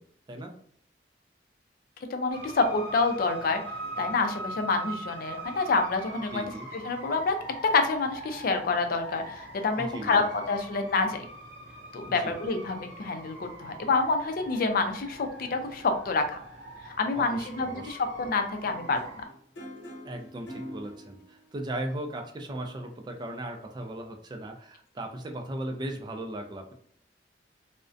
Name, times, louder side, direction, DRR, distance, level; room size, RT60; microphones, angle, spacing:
voice 1, 2.1-6.4 6.8-7.4 7.6-11.3 11.9-16.4 17.0-19.0, left 3 dB, 55° left, 6 dB, 0.4 m, -27 dB
sound 1, 2.3-19.2, right 2 dB, 80° right, 0.6 m, -43 dB
voice 2, 6.3-6.7 9.8-10.3 12.1-12.3 17.1-18.0 20.0-26.7, right 1 dB, 25° right, 4 dB, 0.3 m, -37 dB
sound 2, 18.7-21.6 23.1-23.2, equal, 75° left, 0.8 m, -44 dB
2.4 x 2.1 x 2.5 m, 0.62 s
head